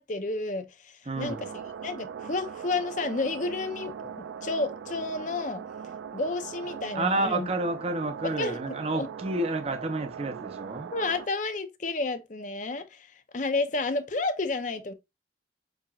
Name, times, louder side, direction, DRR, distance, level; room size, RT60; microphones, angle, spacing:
voice 1, 0.0-1.5 1.8-4.1 4.4-5.6 6.1-7.5 8.2-8.6 8.9-9.1 10.9-13.1 13.3-14.9, left 3 dB, 45° left, 0.6 m, -31 dB
voice 2, 1.1-1.5 6.9-10.9, right 2 dB, 35° right, 0.6 m, -30 dB
sound 1, 1.2-11.3, right 7 dB, 85° right, 0.4 m, -40 dB
7.3 x 2.9 x 2.4 m
head